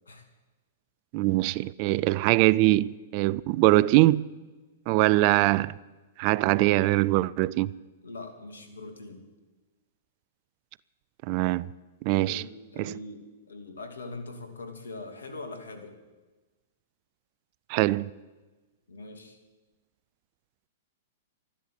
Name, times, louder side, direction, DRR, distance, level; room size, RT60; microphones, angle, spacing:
voice 1, 1.1-4.3 4.9-5.8 6.2-7.7 11.2-11.7 12.0-12.4 12.8-12.9 17.7-18.1, right 18 dB, 45° right, 0.5 m, -22 dB
voice 2, 8.0-9.3 12.2-16.0 18.9-19.4, left 2 dB, 80° left, 2.6 m, -42 dB
13.0 x 12.0 x 8.6 m
hypercardioid pair, 110°, 0 cm